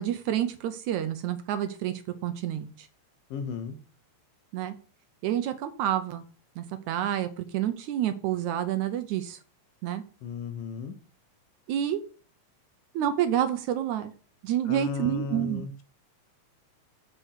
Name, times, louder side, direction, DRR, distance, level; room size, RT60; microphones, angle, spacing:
voice 1, 0.0-1.9 2.2-2.9 4.5-4.7 5.2-6.2 6.6-9.4 9.8-10.0 11.7-12.0 13.0-14.1 14.4-15.6, right 11 dB, 75° right, 10 dB, 1.9 m, -28 dB
voice 2, 3.3-3.8 10.2-11.0 14.7-15.8, left 5 dB, 85° left, 8 dB, 2.8 m, -35 dB
8.1 x 4.4 x 6.4 m, 0.39 s
omnidirectional pair, 3.9 m